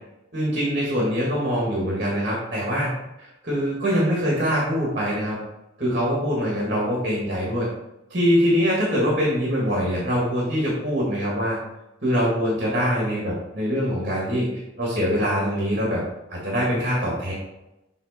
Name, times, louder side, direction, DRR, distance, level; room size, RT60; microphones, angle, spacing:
voice 1, 0.3-2.9 3.2-5.4 5.8-7.7 8.1-11.6 12.0-14.5 14.8-16.0 16.3-17.3, equal, 45° right, -4 dB, 1.9 m, -23 dB
7.5 x 3.9 x 4.2 m, 0.95 s
head